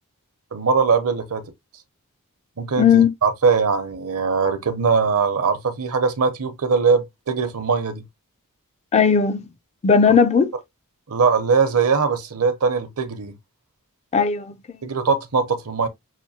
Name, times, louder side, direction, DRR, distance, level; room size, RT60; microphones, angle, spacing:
voice 1, 0.5-1.5 2.6-8.0 11.1-13.3 14.8-15.9, right 5 dB, 70° right, 0.8 m, -21 dB
voice 2, 2.8-3.1 8.9-9.4 9.8-10.5 14.1-14.8, left 6 dB, 30° left, 0.4 m, -17 dB
5.8 x 2.6 x 2.8 m
head